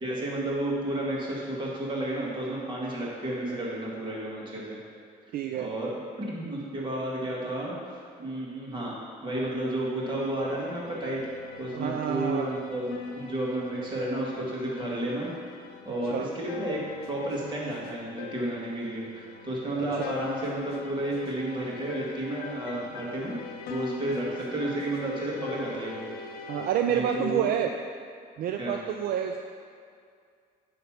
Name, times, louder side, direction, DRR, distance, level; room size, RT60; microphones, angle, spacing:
voice 1, 0.0-4.8 5.6-8.9 9.2-11.3 11.6-15.3 15.9-16.8 17.1-23.3 23.7-26.1 26.9-27.5 28.6-28.8, right 1 dB, 30° right, -5 dB, 2.0 m, -32 dB
voice 2, 5.3-5.7 11.7-12.5 16.0-16.3 19.8-20.0 26.5-27.7 28.4-29.4, right 9 dB, 65° right, 4 dB, 0.4 m, -29 dB
sound 1, 9.4-26.7, left 5 dB, 65° left, 0.6 m, -42 dB
9.3 x 3.4 x 5.8 m, 2.2 s
cardioid pair, 110°, 17 cm